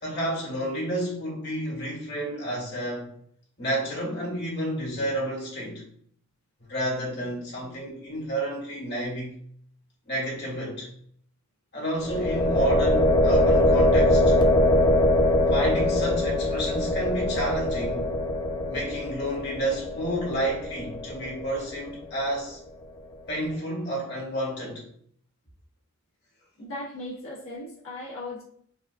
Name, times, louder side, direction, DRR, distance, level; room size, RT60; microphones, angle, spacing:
voice 1, 0.0-3.1 3.6-5.8 6.7-9.3 10.1-10.9 11.7-14.3 15.5-18.1 18.7-22.6 23.3-24.8, right 1 dB, 55° left, -3 dB, 1.5 m, -30 dB
sound 1, 12.0-21.9, left 1 dB, 20° left, 0.4 m, -23 dB
voice 2, 26.6-28.4, left 1 dB, 75° left, -9 dB, 1.1 m, -37 dB
4.0 x 2.3 x 2.4 m, 0.63 s
head